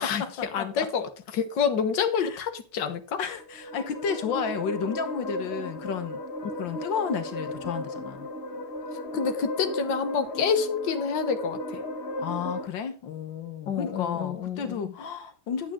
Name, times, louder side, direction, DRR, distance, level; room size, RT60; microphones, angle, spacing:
voice 1, 0.0-0.9 2.2-2.4 3.2-6.2 6.6-8.3 12.2-15.7, left 7 dB, 90° left, 1.9 m, -32 dB
voice 2, 0.5-3.2 9.1-11.8 13.7-14.9, left 6 dB, 70° left, 1.9 m, -28 dB
sound 1, 3.3-12.7, left 1 dB, 40° left, 1.5 m, -35 dB
11.5 x 8.7 x 3.8 m
omnidirectional pair, 2.0 m